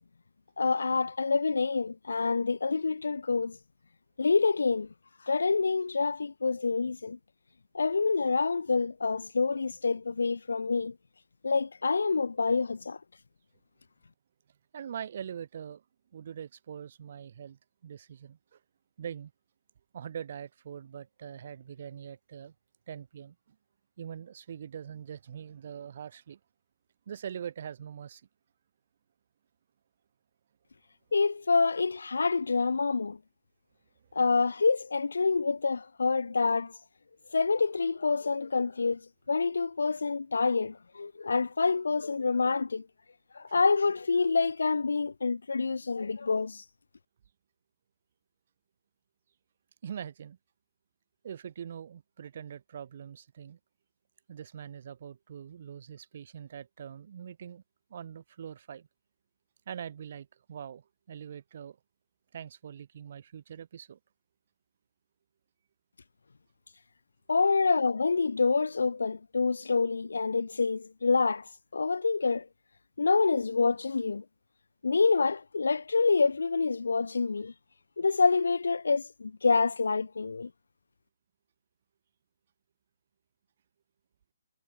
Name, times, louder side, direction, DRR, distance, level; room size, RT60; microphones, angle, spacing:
voice 1, 0.6-3.6 4.2-4.9 5.2-7.2 7.7-10.9 11.4-13.0 31.1-33.2 34.1-36.7 37.3-39.0 39.3-42.9 43.3-46.6 67.3-72.5 73.0-74.2 74.8-77.5 78.0-80.5, left 4 dB, 65° left, 0.6 m, -27 dB
voice 2, 14.7-15.8 16.1-18.6 19.0-19.3 19.9-22.5 22.9-23.6 24.0-26.4 27.1-28.3 49.8-50.4 51.2-53.6 54.3-57.6 57.9-58.9 59.7-61.8 62.3-64.0 67.6-67.7, right 8 dB, 45° right, 1.9 m, -43 dB
figure-of-eight pair, 135°, 0 cm